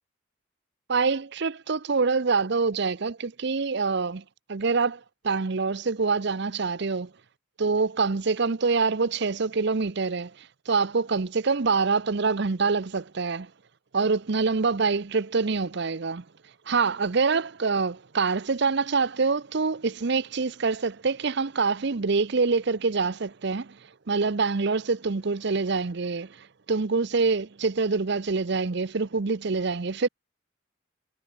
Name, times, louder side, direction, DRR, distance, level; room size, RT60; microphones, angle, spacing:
voice 1, 0.9-4.2 4.5-7.1 7.6-13.5 13.9-16.2 16.7-23.8 24.1-30.1, right 4 dB, 55° right, 0.7 m, -25 dB
head